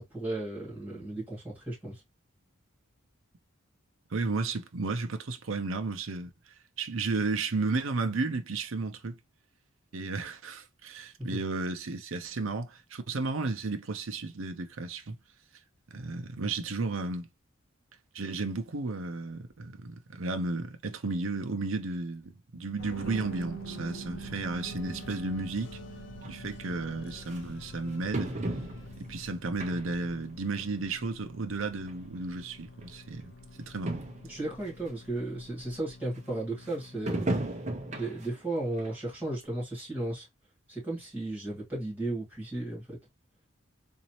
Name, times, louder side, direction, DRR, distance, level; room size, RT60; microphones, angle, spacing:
voice 1, 0.0-2.0 11.3-11.4 34.3-37.3 37.9-40.3 40.7-43.0, right 2 dB, 10° right, 2.3 m, -35 dB
voice 2, 4.1-9.2 9.9-15.2 15.9-17.3 18.1-25.8 26.3-28.3 29.0-33.3 33.6-34.0, right 3 dB, 70° right, 0.7 m, -33 dB
sound 1, 22.8-38.0, left 3 dB, 60° left, 0.5 m, -48 dB
Bass guitar, 22.9-27.6 27.9-29.2, right 8 dB, 55° right, 0.3 m, -45 dB
sound 2, 26.2-26.3 27.3-27.4 28.1-29.1 29.6-30.1 30.5-30.6 31.6-31.7 31.9-32.0 32.8-32.9 33.2-33.3 33.6-33.7 33.9-34.3 34.9-35.0 37.1-38.4 38.8-38.9 39.4-39.5, right 1 dB, 35° right, 0.7 m, -34 dB
4.0 x 2.7 x 3.0 m
head